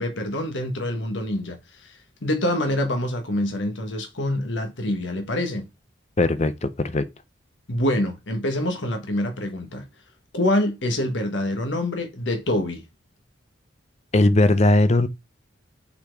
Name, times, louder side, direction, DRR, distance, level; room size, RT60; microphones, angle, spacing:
voice 1, 0.0-5.7 7.7-9.9 10.3-12.8, left 1 dB, 80° left, 1.4 m, -26 dB
voice 2, 6.2-7.1 14.1-15.1, left 2 dB, 35° left, 0.7 m, -19 dB
5.7 x 4.3 x 4.5 m
head